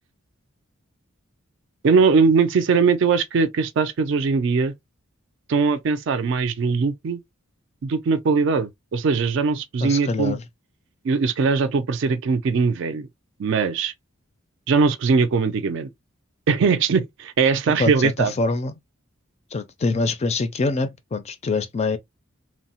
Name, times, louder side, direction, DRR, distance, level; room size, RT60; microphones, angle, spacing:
voice 1, 1.8-4.7 5.5-7.2 7.8-10.4 11.0-13.1 13.4-13.9 14.7-15.9 16.5-18.3, right 5 dB, 60° right, 0.4 m, -20 dB
voice 2, 9.8-10.4 17.8-18.7 19.5-22.0, left 3 dB, 30° left, 0.4 m, -24 dB
3.0 x 2.0 x 2.8 m
head